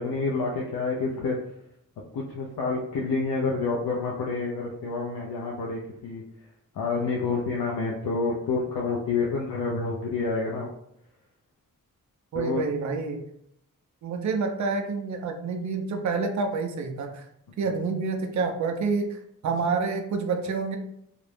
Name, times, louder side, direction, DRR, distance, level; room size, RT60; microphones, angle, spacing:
voice 1, 0.0-1.4 2.1-6.2 6.7-10.7 12.3-12.6, left 4 dB, 90° left, -2 dB, 0.5 m, -28 dB
voice 2, 12.3-13.2 14.0-17.2 17.6-20.8, right 4 dB, 60° right, 4 dB, 0.4 m, -28 dB
2.4 x 2.0 x 3.1 m, 0.74 s
wide cardioid pair, 145°, 33 cm